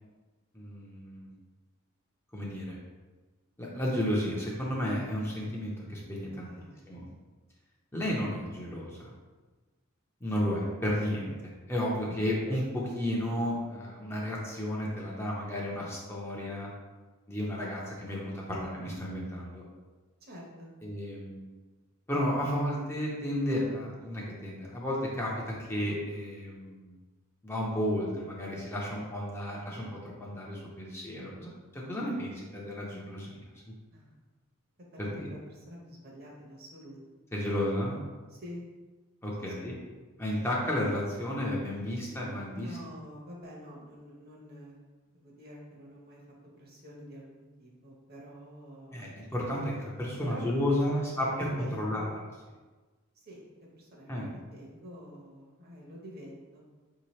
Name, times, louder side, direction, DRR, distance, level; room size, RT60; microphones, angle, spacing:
voice 1, 0.5-1.3 2.3-2.8 3.6-6.5 6.9-7.1 7.9-9.1 10.2-11.3 11.7-16.7 17.3-19.6 20.8-21.4 22.1-26.9 27.4-33.7 35.0-35.3 37.3-38.0 39.2-39.8 40.2-42.8 48.9-52.0 54.1-54.3, left 1 dB, 10° left, -4 dB, 0.6 m, -32 dB
voice 2, 6.4-6.9 20.2-20.7 33.9-34.2 34.9-37.0 38.3-38.6 39.4-39.7 42.5-44.8 45.1-46.2 46.6-49.1 50.2-50.5 50.9-52.1 53.1-56.6, equal, 45° right, -3 dB, 0.9 m, -47 dB
5.1 x 2.8 x 3.1 m, 1.3 s
head